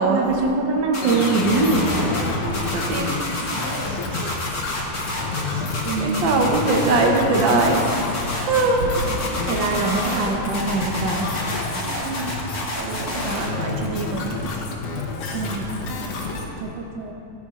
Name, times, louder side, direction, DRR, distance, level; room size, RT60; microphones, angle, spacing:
voice 1, 0.1-1.9 5.8-6.2 9.3-11.3 15.3-15.7 16.6-17.1, right 3 dB, 80° right, 1 dB, 1.0 m, -23 dB
sound 1, 0.9-2.2 2.5-3.9 4.1-5.4 5.7-7.1 7.3-8.6 8.9-10.3 10.5-13.5, left 1 dB, 35° left, 2.0 m, -29 dB
sound 2, 1.0-3.3, left 1 dB, 60° left, 2.2 m, -28 dB
sound 3, 1.4-16.5, left 3 dB, 85° left, 2.7 m, -30 dB
voice 2, 2.4-3.3 4.1-4.4 5.5-5.6 6.0-7.8 8.4-9.0 11.8-12.3 12.7-14.4 15.2-15.4, right 3 dB, 65° right, 2 dB, 1.2 m, -23 dB
15.5 x 10.0 x 3.7 m, 2.7 s
omnidirectional pair, 3.4 m